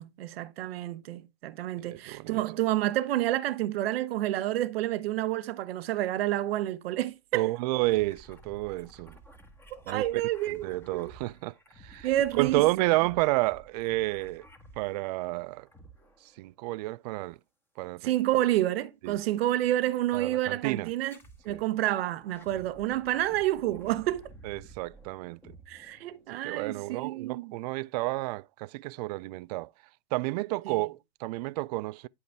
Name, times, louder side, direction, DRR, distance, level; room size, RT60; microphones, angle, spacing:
voice 1, 0.0-7.5 9.7-11.1 12.0-12.6 18.0-21.2 21.4-24.3 25.7-27.5 30.6-30.8, right 14 dB, 60° right, 1.1 m, -29 dB
voice 2, 1.8-2.4 7.3-9.2 9.9-10.1 10.6-12.1 12.3-14.5 14.8-15.7 16.4-17.4 17.8-18.0 19.0-19.2 20.1-20.9 21.5-21.6 24.4-25.4 26.4-29.7 30.1-32.1, right 20 dB, 40° right, 0.4 m, -30 dB
sound 1, 7.8-15.3 15.7-16.4 18.1-18.6 19.6-19.7 20.9-21.7 22.1-26.5, right 1 dB, 5° left, 1.3 m, -53 dB
11.0 x 5.0 x 3.4 m
hypercardioid pair, 115°, 34 cm